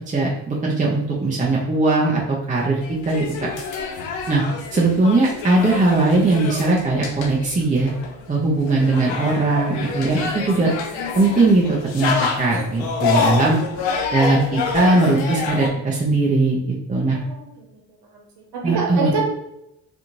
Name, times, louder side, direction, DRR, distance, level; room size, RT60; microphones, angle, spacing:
voice 1, 0.0-2.8 3.0-3.5 4.3-4.4 4.7-7.9 8.3-10.7 11.2-12.1 12.4-13.6 14.1-16.6 16.9-17.2 18.6-19.1, right 2 dB, 15° right, -4 dB, 0.6 m, -19 dB
sound 1, 2.8-15.7, left 5 dB, 80° left, 0.7 m, -27 dB
voice 2, 17.1-17.7 18.1-18.2 18.5-19.2, right 4 dB, 60° right, -1 dB, 1.1 m, -27 dB
2.8 x 2.5 x 2.6 m, 0.82 s
supercardioid pair, 55°, 45 cm